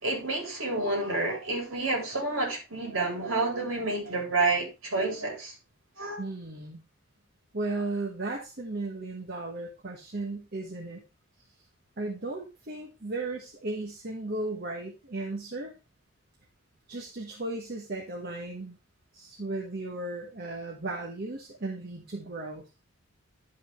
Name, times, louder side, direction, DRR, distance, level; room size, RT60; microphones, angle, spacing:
voice 1, 0.0-5.6 6.0-6.2, right 2 dB, 65° right, 3.7 m, -29 dB
voice 2, 6.2-6.8 7.5-11.0 12.0-15.7 16.9-18.8 19.1-22.7, right 2 dB, 45° right, 1.3 m, -35 dB
11.0 x 5.4 x 3.4 m
head